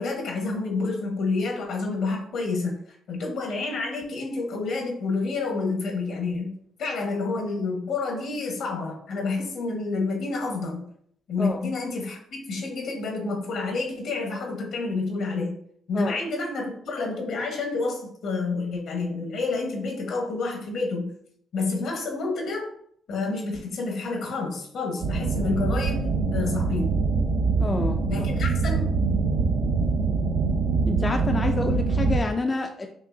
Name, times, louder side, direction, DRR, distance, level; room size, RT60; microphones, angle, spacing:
voice 1, 0.0-2.8 3.1-10.8 11.3-15.6 15.9-21.1 21.5-22.7 23.1-27.0 28.1-28.8, left 3 dB, 70° left, 1 dB, 1.2 m, -29 dB
sound 1, 25.0-32.2, right 4 dB, 70° right, 0.6 m, -24 dB
voice 2, 27.6-28.0 30.9-32.9, left 3 dB, 30° left, 4 dB, 0.4 m, -27 dB
5.4 x 2.9 x 2.6 m, 0.65 s
cardioid pair, 90°, 0 cm